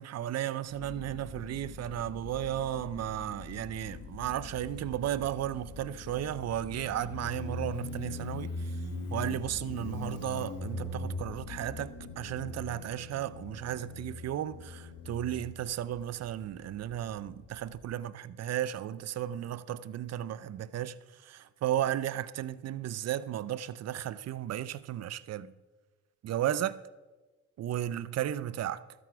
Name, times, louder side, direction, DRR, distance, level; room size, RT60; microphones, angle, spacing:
voice 1, 0.0-8.8 9.1-25.5 26.2-26.8 27.6-28.8, right 11 dB, 55° right, 0.6 m, -34 dB
Motorcycle, 0.7-17.9, left 3 dB, 80° left, 1.8 m, -42 dB
12.5 x 9.2 x 4.7 m
cardioid pair, 90°, 30 cm